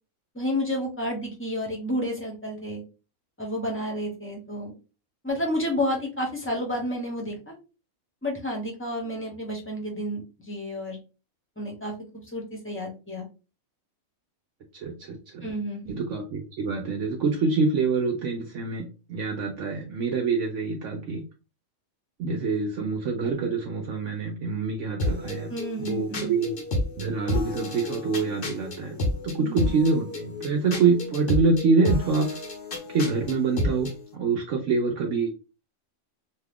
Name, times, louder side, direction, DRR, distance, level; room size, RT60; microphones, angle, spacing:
voice 1, 0.3-2.8 3.4-4.7 5.2-7.5 8.2-11.0 11.6-11.9 12.3-13.3 15.4-16.0 25.5-26.3 29.4-29.6, equal, 10° left, -1 dB, 0.8 m, -30 dB
voice 2, 14.7-15.5 15.9-21.2 22.2-25.5 25.8-26.6 27.0-32.3 32.9-35.3, right 4 dB, 65° right, 1 dB, 0.9 m, -26 dB
sound 1, 25.0-34.0, left 2 dB, 50° left, 0.8 m, -31 dB
2.8 x 2.3 x 3.4 m, 0.32 s
omnidirectional pair, 1.4 m